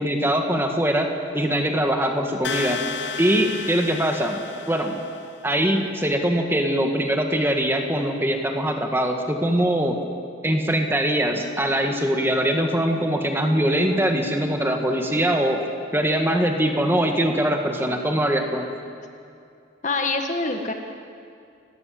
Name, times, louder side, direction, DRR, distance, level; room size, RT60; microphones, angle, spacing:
voice 1, 0.0-2.8 3.2-4.4 4.7-5.0 5.4-10.0 10.4-15.6 15.9-18.7, right 1 dB, 10° right, 3 dB, 1.9 m, -22 dB
sound 1, 2.4-5.4, left 5 dB, 60° left, 0.9 m, -32 dB
voice 2, 19.8-20.7, left 3 dB, 40° left, 5 dB, 1.8 m, -25 dB
29.5 x 19.0 x 7.8 m, 2.4 s
head